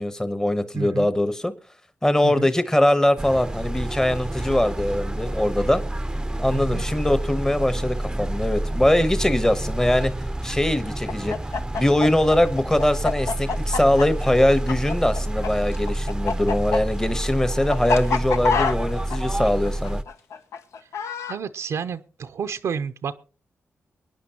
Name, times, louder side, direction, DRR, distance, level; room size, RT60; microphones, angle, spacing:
voice 1, 0.0-1.5 2.0-5.8 6.4-10.1 10.4-11.3 11.7-20.0, left 1 dB, 10° left, 0.9 m, -22 dB
voice 2, 0.7-1.1 2.2-2.5 6.5-6.8 21.3-23.2, right 6 dB, 80° right, 0.6 m, -30 dB
sound 1, 3.2-20.0, right 1 dB, 15° right, 0.6 m, -28 dB
Chicken rooster, 11.0-15.5 15.7-21.4, left 5 dB, 80° left, 0.8 m, -26 dB
24.0 x 9.7 x 2.8 m
cardioid pair, 70°, 5 cm